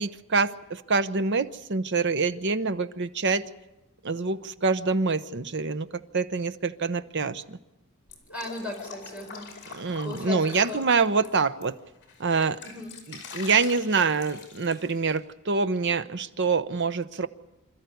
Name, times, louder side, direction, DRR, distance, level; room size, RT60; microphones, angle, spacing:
voice 1, 0.0-3.4 4.0-5.9 6.1-7.6 9.7-11.7 12.2-12.6 13.1-17.3, right 4 dB, 55° right, 12 dB, 0.8 m, -26 dB
Drip, 8.1-11.6 12.0-15.2, left 4 dB, 50° left, 4.8 m, -43 dB
voice 2, 8.3-10.8 12.6-12.9, left 2 dB, 5° right, -1 dB, 5.1 m, -38 dB
26.5 x 13.5 x 9.4 m, 0.98 s
head